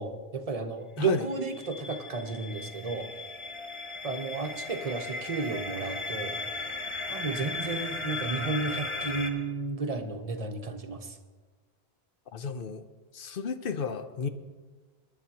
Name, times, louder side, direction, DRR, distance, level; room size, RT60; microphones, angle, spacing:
voice 1, 0.0-3.1 4.0-6.4 7.1-11.1, right 4 dB, 40° right, 6 dB, 0.9 m, -33 dB
voice 2, 1.0-1.3 12.3-12.8 13.1-14.3, left 6 dB, 60° left, 10 dB, 0.9 m, -33 dB
sound 1, 1.2-9.3, left 3 dB, 30° left, 1.1 m, -36 dB
21.5 x 11.0 x 2.9 m, 1.4 s
omnidirectional pair, 1.1 m